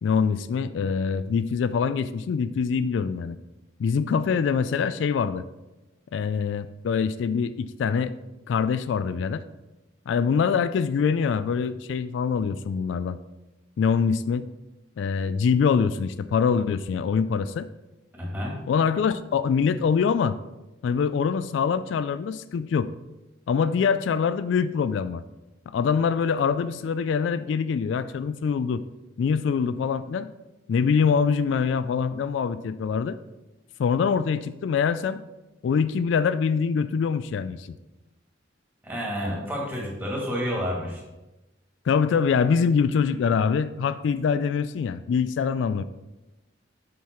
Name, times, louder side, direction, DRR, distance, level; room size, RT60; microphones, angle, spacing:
voice 1, 0.0-3.3 3.8-5.4 6.1-8.1 8.5-9.4 10.1-13.2 13.8-14.5 15.0-17.7 18.7-20.4 20.8-22.9 23.5-25.2 25.7-28.8 29.2-30.3 30.7-33.2 33.8-35.2 35.6-37.8 41.9-45.8, left 6 dB, 70° left, 13 dB, 0.3 m, -24 dB
voice 2, 18.2-18.6 38.8-41.0, equal, 10° right, -3 dB, 2.0 m, -29 dB
7.5 x 5.6 x 4.4 m, 1.0 s
head